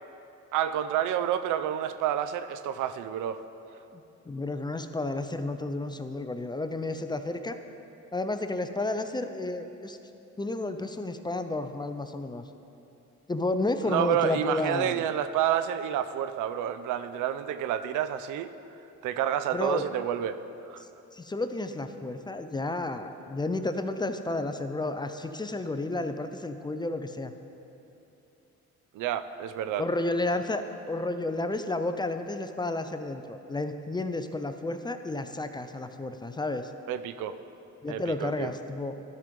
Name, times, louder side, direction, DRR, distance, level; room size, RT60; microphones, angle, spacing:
voice 1, 0.5-3.4 13.9-18.5 19.0-20.4 20.7-20.8 28.9-29.8 36.9-37.4 37.9-38.5, right 10 dB, 85° right, 12 dB, 0.5 m, -29 dB
voice 2, 3.9-7.6 8.1-10.0 10.4-12.4 13.3-15.0 19.5-19.9 21.1-27.3 29.8-36.7 37.8-39.0, left 2 dB, 15° left, 8 dB, 0.4 m, -31 dB
12.0 x 5.2 x 5.2 m, 2.8 s
cardioid pair, 90°, 30 cm